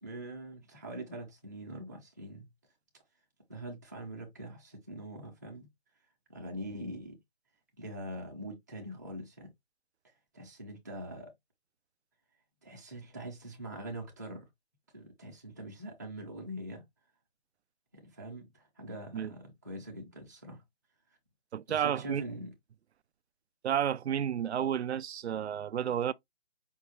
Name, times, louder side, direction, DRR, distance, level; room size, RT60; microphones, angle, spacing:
voice 1, 0.0-2.5 3.5-5.7 6.3-7.2 7.8-9.5 10.3-11.3 12.6-14.5 14.9-16.8 17.9-20.6 21.7-22.5, right 1 dB, 15° right, 0.7 m, -43 dB
voice 2, 21.5-22.2 23.6-26.1, right 9 dB, 85° right, 0.5 m, -31 dB
5.3 x 2.3 x 3.1 m
hypercardioid pair, 175°, 32 cm